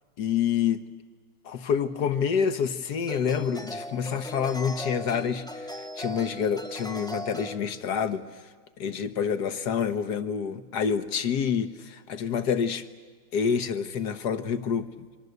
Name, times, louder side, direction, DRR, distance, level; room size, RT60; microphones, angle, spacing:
voice 1, 0.2-0.8 1.4-8.5 8.8-12.8 13.3-15.1, left 7 dB, 55° left, 12 dB, 1.6 m, -28 dB
sound 1, 1.8-1.9 3.0-7.6, left 1 dB, 5° left, 0.5 m, -38 dB
28.5 x 23.0 x 8.1 m, 1.5 s
omnidirectional pair, 2.4 m